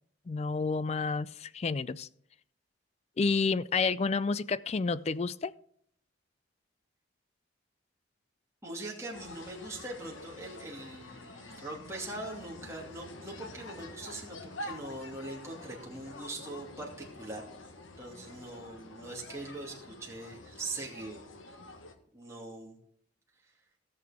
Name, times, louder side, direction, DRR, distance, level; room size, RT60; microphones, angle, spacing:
voice 1, 0.3-2.1 3.2-5.5, left 4 dB, 35° left, 18 dB, 0.3 m, -30 dB
voice 2, 8.6-17.4 18.0-21.3 22.1-22.8, right 2 dB, 15° right, -3 dB, 2.3 m, -42 dB
sound 1, 9.1-21.9, left 2 dB, 80° left, 1.4 m, -47 dB
17.5 x 6.8 x 3.5 m, 0.67 s
head